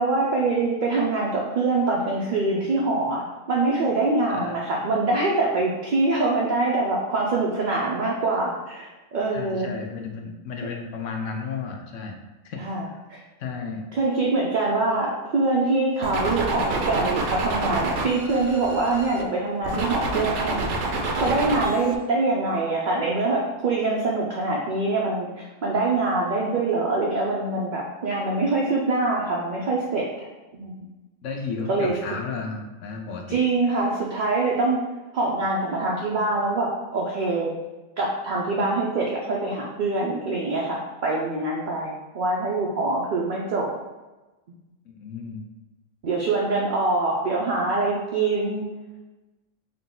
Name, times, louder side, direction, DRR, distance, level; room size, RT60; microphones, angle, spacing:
voice 1, 0.0-3.2 3.5-9.7 12.6-13.2 13.9-30.3 30.5-30.9 31.7-31.9 33.3-34.8 35.1-37.5 38.0-43.7 46.0-48.7, right 3 dB, 55° right, -4 dB, 0.6 m, -24 dB
voice 2, 9.3-12.2 12.4-13.0 13.4-13.9 31.2-33.4 44.8-45.4, left 5 dB, 80° left, 2 dB, 1.0 m, -33 dB
sound 1, 16.0-19.2 19.6-21.9, right 2 dB, 70° right, 0.9 m, -28 dB
3.7 x 2.8 x 3.8 m, 1.1 s
omnidirectional pair, 1.3 m